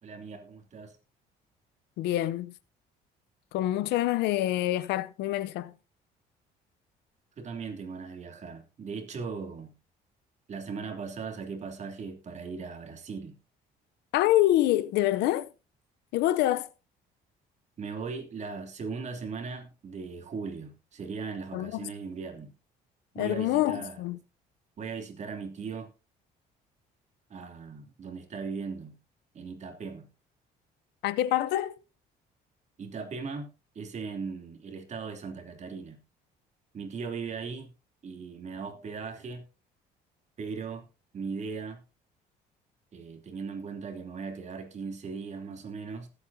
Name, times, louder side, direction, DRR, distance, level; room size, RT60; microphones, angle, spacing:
voice 1, 0.0-1.0 7.4-9.7 10.5-13.4 17.8-22.5 23.1-24.0 24.8-25.9 27.3-29.0 29.3-30.1 32.8-36.0 36.7-37.7 38.0-39.5 40.4-40.8 41.1-41.8 42.9-46.1, right 5 dB, 45° right, 2.9 m, -38 dB
voice 2, 2.0-2.5 3.5-5.7 14.1-15.5 16.1-16.7 21.5-21.9 23.2-24.2 31.0-31.8, left 14 dB, 85° left, 0.7 m, -26 dB
19.5 x 8.3 x 2.7 m
cardioid pair, 110°, 17 cm